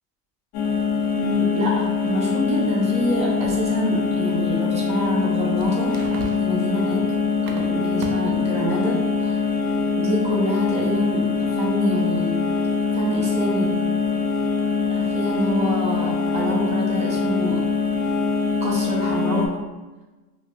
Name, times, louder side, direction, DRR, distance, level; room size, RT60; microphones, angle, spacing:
sound 1, 0.5-19.5, left 4 dB, 75° left, 0.7 m, -23 dB
voice 1, 1.2-6.0 6.3-7.0 7.3-9.4 9.9-12.4 12.9-13.8 14.9-17.7 18.6-19.6, equal, 15° right, -4 dB, 0.3 m, -26 dB
sound 2, 3.4-3.8 5.3-8.4, right 3 dB, 65° right, 0.6 m, -37 dB
2.9 x 2.4 x 2.5 m, 1.2 s
cardioid pair, 140°, 50 cm